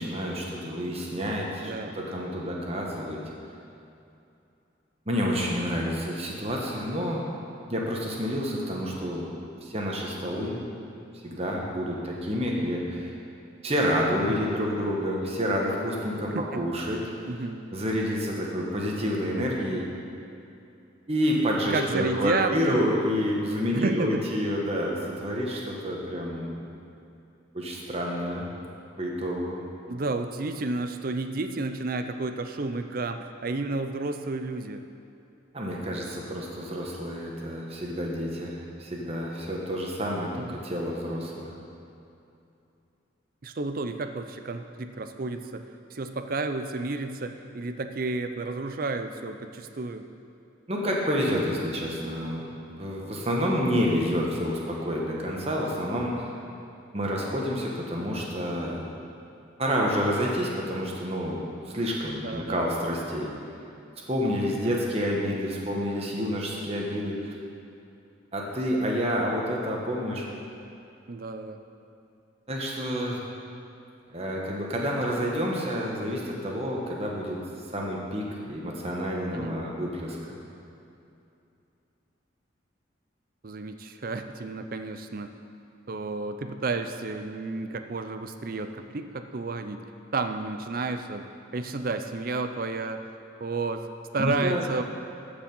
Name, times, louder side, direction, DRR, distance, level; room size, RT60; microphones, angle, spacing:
voice 1, 0.0-3.2 5.1-7.2 7.7-9.3 9.6-10.6 11.2-13.1 13.6-17.0 17.7-19.8 21.1-26.6 27.5-28.5 29.0-29.6 35.5-41.6 50.7-56.3 56.9-58.8 59.6-63.3 64.1-67.3 68.3-70.3 72.5-73.2 74.1-77.4 77.7-80.4 94.2-94.6, equal, 30° right, -2 dB, 1.3 m, -29 dB
voice 2, 1.6-2.0 14.3-14.4 16.2-16.7 17.3-17.6 21.6-22.8 23.7-24.2 29.9-34.8 40.4-40.6 43.4-45.6 45.9-50.1 53.5-53.7 62.2-62.6 64.7-64.8 71.1-71.6 79.3-79.6 83.4-85.3 85.9-89.8 90.1-91.3 91.5-93.0 93.4-93.9 94.1-94.8, right 3 dB, 45° right, 8 dB, 0.5 m, -31 dB
14.0 x 5.1 x 5.4 m, 2.7 s
head